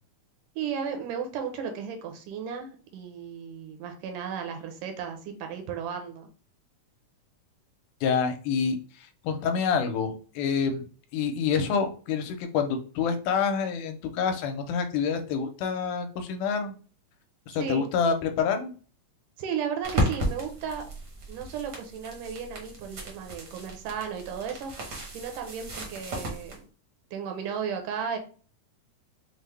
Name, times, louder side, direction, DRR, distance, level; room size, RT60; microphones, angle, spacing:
voice 1, 0.6-6.3 17.6-17.9 19.4-20.8 21.3-24.7 25.1-26.7 27.1-28.2, right 7 dB, 80° right, 5 dB, 2.2 m, -34 dB
voice 2, 8.0-10.9 11.1-16.8 17.5-18.7, left 6 dB, 85° left, 7 dB, 2.1 m, -27 dB
sound 1, 19.8-26.6, equal, 60° right, 1.1 m, -34 dB
5.6 x 2.1 x 3.2 m, 0.39 s
omnidirectional pair, 3.7 m